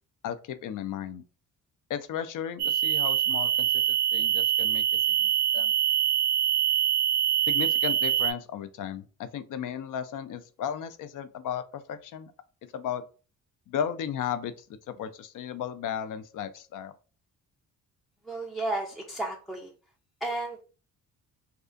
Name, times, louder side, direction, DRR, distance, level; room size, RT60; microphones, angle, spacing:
voice 1, 0.2-1.2 1.9-4.8 5.2-5.7 7.5-12.3 12.6-13.0 13.7-14.5 14.9-16.9, left 8 dB, 50° left, 12 dB, 0.4 m, -35 dB
sound 1, 2.6-8.3, right 10 dB, 70° right, 0.5 m, -24 dB
voice 2, 18.3-19.7 20.2-20.6, right 2 dB, ahead, 1 dB, 0.5 m, -33 dB
2.4 x 2.4 x 2.4 m, 0.37 s
supercardioid pair, 55°, 41 cm